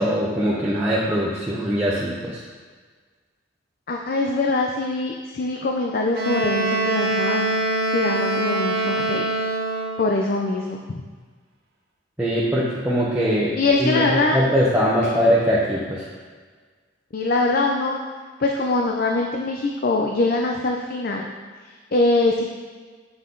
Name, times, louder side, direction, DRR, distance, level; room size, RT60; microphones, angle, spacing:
voice 1, 0.0-2.4 12.2-13.5 13.8-16.1, equal, 10° right, -7 dB, 0.8 m, -21 dB
voice 2, 3.9-7.5 7.9-9.3 10.0-11.0 13.6-14.4 15.0-15.2 17.1-18.0 18.4-21.3 21.9-22.4, left 2 dB, 50° left, 1 dB, 0.5 m, -23 dB
Wind instrument woodwind instrument, 6.1-10.1, right 2 dB, 55° right, 1.0 m, -23 dB
8.4 x 5.8 x 3.9 m, 1.5 s
head